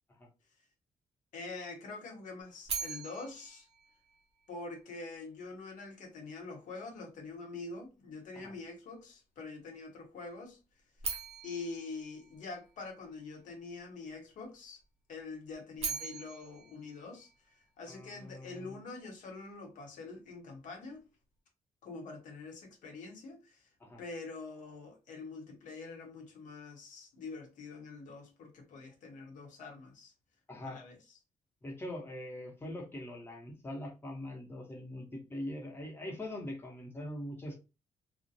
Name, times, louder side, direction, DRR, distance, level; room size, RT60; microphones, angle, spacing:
voice 1, 1.3-3.7 4.5-10.6 11.4-14.8 15.1-17.3 17.8-21.0 21.8-23.7 24.0-30.1 30.6-31.0, left 3 dB, 80° left, 0.9 m, -45 dB
sound 1, 2.6-4.8 11.0-13.2 15.5-17.9, right 5 dB, 50° right, 0.9 m, -42 dB
voice 2, 17.9-18.8 23.8-24.0 30.5-30.8 31.6-37.6, left 1 dB, 15° left, 1.0 m, -42 dB
2.5 x 2.1 x 2.6 m
cardioid pair, 90°, 13 cm